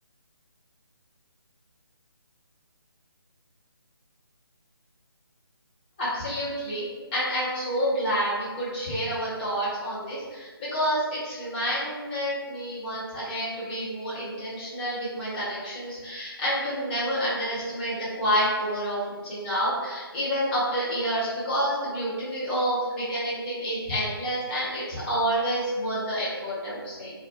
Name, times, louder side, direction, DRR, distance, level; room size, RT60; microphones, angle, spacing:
voice 1, 6.0-27.1, equal, 20° left, -10 dB, 1.0 m, -28 dB
2.5 x 2.1 x 3.9 m, 1.4 s
figure-of-eight pair, 150°, 13 cm